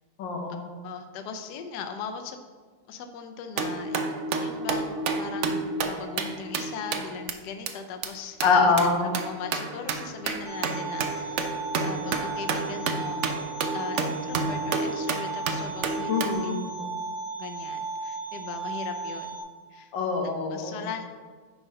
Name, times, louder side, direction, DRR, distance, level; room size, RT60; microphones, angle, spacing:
voice 1, 0.2-0.7 8.4-9.2 16.1-16.8 19.9-20.8, left 4 dB, 90° left, 2 dB, 1.8 m, -24 dB
voice 2, 0.8-2.4 2.9-8.7 9.0-11.6 11.8-13.2 13.7-16.9 17.4-19.4 19.7-19.9 20.5-21.0, left 6 dB, 70° left, 6 dB, 1.2 m, -39 dB
sound 1, 3.6-7.3 7.7-7.8 8.0-8.1 8.4-16.3, right 4 dB, 85° right, 0.6 m, -30 dB
sound 2, 10.4-19.4, right 4 dB, 25° right, 2.4 m, -35 dB
9.0 x 3.7 x 5.2 m, 1.5 s
omnidirectional pair, 2.0 m